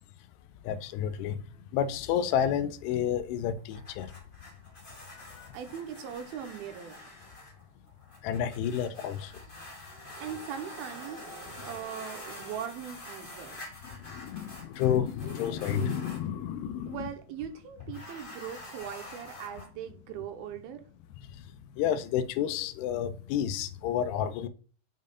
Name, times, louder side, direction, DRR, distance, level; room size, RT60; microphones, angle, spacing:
voice 1, 0.6-1.4 1.7-4.1 5.4-5.5 8.2-9.3 14.1-17.0 21.8-24.5, left 9 dB, 85° left, 2.7 m, -30 dB
sound 1, 3.6-16.3 17.8-19.7, left 1 dB, 50° left, 0.6 m, -47 dB
voice 2, 5.5-7.0 10.2-11.3 11.6-13.6 16.9-20.8, right 9 dB, 75° right, 2.5 m, -40 dB
sound 2, 8.6-12.7, right 2 dB, 30° right, 2.2 m, -50 dB
6.4 x 5.4 x 5.3 m
omnidirectional pair, 4.8 m